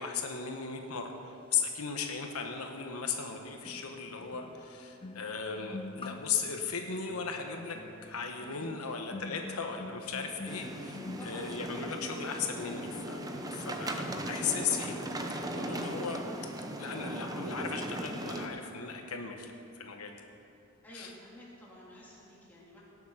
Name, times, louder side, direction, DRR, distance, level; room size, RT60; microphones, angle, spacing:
voice 1, 0.0-13.2 13.5-14.9 15.5-16.2 16.8-19.5 19.8-20.2 20.9-21.1, left 6 dB, 90° left, 4 dB, 1.1 m, -36 dB
sound 1, 2.3-2.4 3.6-14.7 15.0-15.3, left 2 dB, 25° left, 0.4 m, -47 dB
sound 2, 10.5-18.5, right 1 dB, 15° right, 0.8 m, -38 dB
voice 2, 11.2-11.5 20.8-22.8, equal, 10° left, -7 dB, 3.0 m, -51 dB
17.5 x 7.2 x 5.7 m, 2.6 s
head